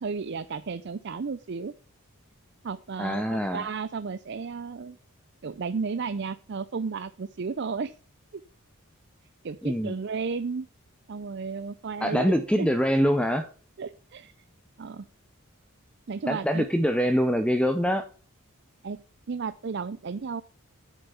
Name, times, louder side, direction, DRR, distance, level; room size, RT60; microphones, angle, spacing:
voice 1, 0.0-1.7 2.6-5.0 5.4-7.9 8.3-8.4 9.4-10.7 11.1-12.7 13.8-14.3 14.8-15.1 16.1-16.7 18.8-20.4, right 5 dB, 50° right, 13 dB, 0.5 m, -33 dB
voice 2, 3.0-3.7 9.6-9.9 12.0-13.5 16.3-18.1, equal, 5° left, 8 dB, 0.6 m, -24 dB
9.0 x 7.0 x 5.8 m, 0.38 s
head